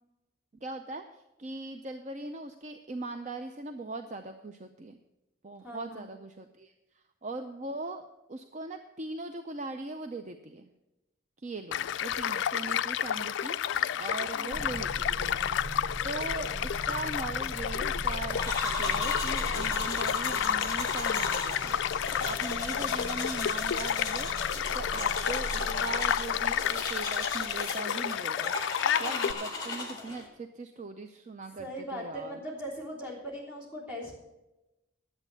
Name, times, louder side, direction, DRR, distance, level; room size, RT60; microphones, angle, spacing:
voice 1, 0.6-5.0 5.4-6.7 7.2-10.7 11.4-13.6 14.0-15.7 16.0-21.8 22.2-24.3 24.7-28.5 29.0-32.4, right 3 dB, 35° right, 7 dB, 0.5 m, -40 dB
voice 2, 5.6-6.1 14.3-14.6 25.6-26.0 31.6-34.1, equal, 5° right, -5 dB, 3.4 m, -40 dB
Child speech kid speaking / Stream / Car passing by, 11.7-29.3, left 9 dB, 70° left, 0.3 m, -31 dB
sound 1, 14.5-27.8, equal, 65° right, 5.1 m, -41 dB
sound 2, 18.3-30.3, left 3 dB, 20° left, 1.9 m, -36 dB
10.5 x 8.1 x 6.9 m, 0.97 s
head